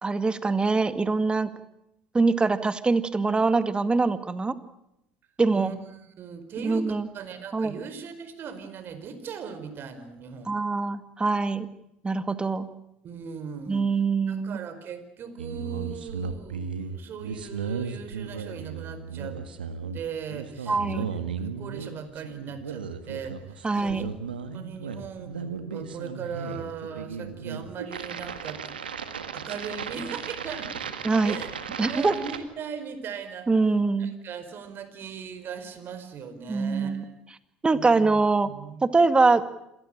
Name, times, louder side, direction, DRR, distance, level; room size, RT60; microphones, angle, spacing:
voice 1, 0.0-1.5 2.1-4.6 5.4-5.7 6.6-7.1 7.5-7.8 10.5-11.7 12.0-12.7 13.7-14.6 20.7-21.1 23.6-24.1 31.0-31.4 31.8-32.1 33.5-34.1 36.5-37.0 37.6-38.5 38.8-39.4, right 3 dB, 20° right, 11 dB, 2.1 m, -23 dB
voice 2, 6.2-10.6 13.0-13.9 14.3-19.4 19.9-24.1 24.5-28.6 29.3-30.9 31.2-31.6 31.9-37.2 37.7-38.8, right 6 dB, 45° right, 10 dB, 4.7 m, -39 dB
sound 1, 15.4-32.4, right 6 dB, 90° right, 1.8 m, -35 dB
27.0 x 18.0 x 8.9 m, 0.81 s
hypercardioid pair, 70°, 5 cm